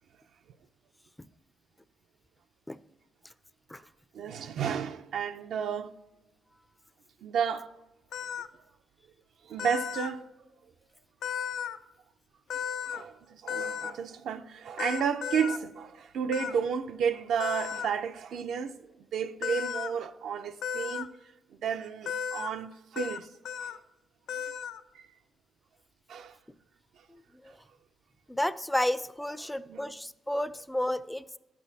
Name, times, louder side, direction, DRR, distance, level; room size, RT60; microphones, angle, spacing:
voice 1, 4.1-5.9 7.2-7.7 9.4-10.3 12.9-21.1 21.6-23.3 23.6-23.8 24.9-25.1 26.1-26.4 29.4-29.9, right 7 dB, 75° right, 0.4 m, -32 dB
sound 1, 8.1-8.5 9.6-10.1 11.2-11.8 12.5-13.0 13.5-13.9 14.8-15.6 16.3-16.5 17.4-17.9 19.4-19.9 20.6-21.1 22.1-22.5 23.0-23.2 23.4-23.8 24.3-24.8, left 8 dB, 85° left, 0.4 m, -34 dB
voice 2, 28.3-31.2, left 1 dB, 5° left, 0.4 m, -31 dB
11.5 x 8.3 x 2.7 m
cardioid pair, 100°, 0 cm